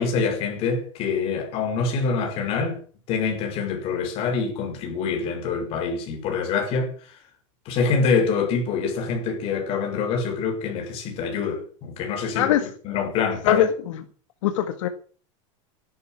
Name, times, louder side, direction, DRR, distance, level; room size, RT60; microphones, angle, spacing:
voice 1, 0.0-2.8 3.1-6.9 7.6-13.6, left 5 dB, 35° left, 5.1 m, -25 dB
voice 2, 14.4-14.9, left 11 dB, 80° left, 1.8 m, -20 dB
13.5 x 11.5 x 7.6 m
supercardioid pair, 165°, 16 cm